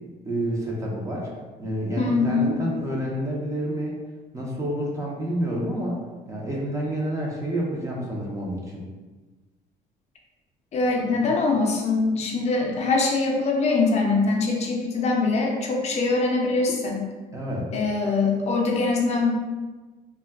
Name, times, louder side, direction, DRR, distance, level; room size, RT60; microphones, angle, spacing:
voice 1, 0.3-1.3 1.6-3.9 4.3-6.0 6.3-8.8 11.1-11.3 17.3-17.9, right 1 dB, 20° right, -3 dB, 0.6 m, -29 dB
voice 2, 2.0-2.5 10.7-17.1 17.7-19.3, left 3 dB, 40° left, 0 dB, 0.5 m, -23 dB
2.2 x 2.1 x 3.4 m, 1.3 s
cardioid pair, 110°, 17 cm